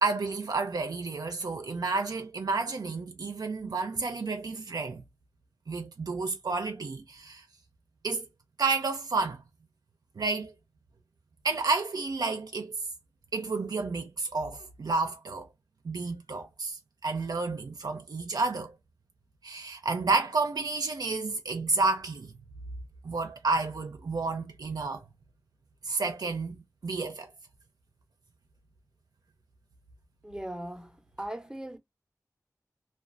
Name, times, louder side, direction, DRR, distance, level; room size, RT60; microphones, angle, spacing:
voice 1, 0.0-5.0 5.7-7.4 8.0-8.3 8.6-9.4 10.2-10.5 11.4-12.8 13.3-15.5 15.8-18.8 19.4-22.3 23.0-25.0 25.8-27.3, right 3 dB, 85° right, 0.4 m, -30 dB
voice 2, 30.2-31.8, right 1 dB, 10° right, 0.6 m, -39 dB
2.4 x 2.2 x 2.5 m
wide cardioid pair, 55°, 7 cm